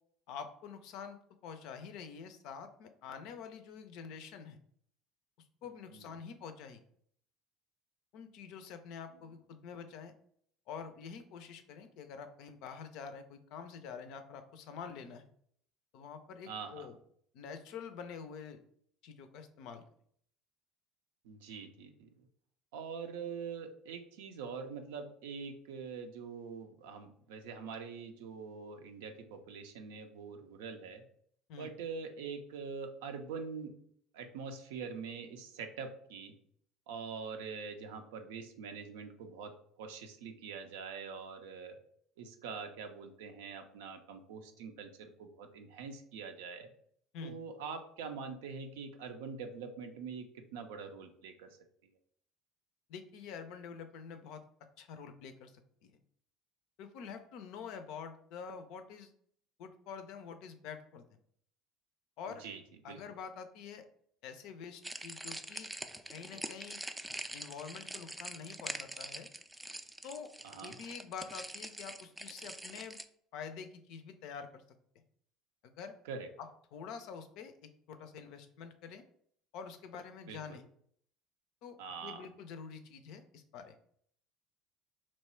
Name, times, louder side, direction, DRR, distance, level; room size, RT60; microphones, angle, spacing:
voice 1, 0.3-1.2 1.4-4.6 5.6-6.8 8.1-10.1 10.7-15.3 15.9-17.0 17.3-18.6 19.0-19.8 31.5-31.7 47.1-47.4 52.9-54.4 54.8-55.9 56.8-59.1 59.6-61.1 62.2-62.4 62.8-63.8 64.2-65.7 66.1-66.8 67.3-69.3 70.0-70.3 70.6-73.0 73.3-74.6 75.6-75.9 76.4-79.0 79.5-80.6 81.6-83.8, left 6 dB, 60° left, 9 dB, 0.4 m, -47 dB
voice 2, 16.5-16.9 21.2-22.3 22.7-31.0 31.6-33.8 34.1-36.3 36.9-41.8 42.2-46.7 47.2-51.6 62.4-62.6 62.9-63.0 70.4-70.8 76.1-76.3 80.3-80.6 81.8-82.3, right 5 dB, 70° right, 6 dB, 0.4 m, -44 dB
sound 1, 64.8-73.0, right 1 dB, 10° right, 0.3 m, -44 dB
2.9 x 2.2 x 4.2 m, 0.63 s
figure-of-eight pair, 60°, 0 cm